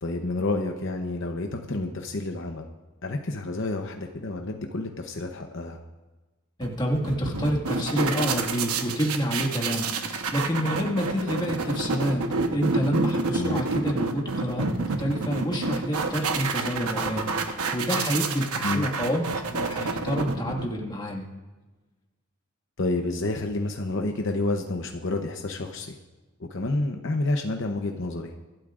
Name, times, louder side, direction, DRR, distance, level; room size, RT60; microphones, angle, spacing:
voice 1, 0.0-2.6 3.0-5.8 13.3-13.7 18.6-18.9 22.8-26.0 26.4-28.3, left 2 dB, 55° left, 4 dB, 0.8 m, -29 dB
voice 2, 6.6-21.3, equal, 20° left, 0 dB, 1.8 m, -28 dB
sound 1, 6.6-21.0, right 3 dB, 85° right, 1.1 m, -29 dB
24.5 x 12.0 x 2.5 m, 1.2 s
head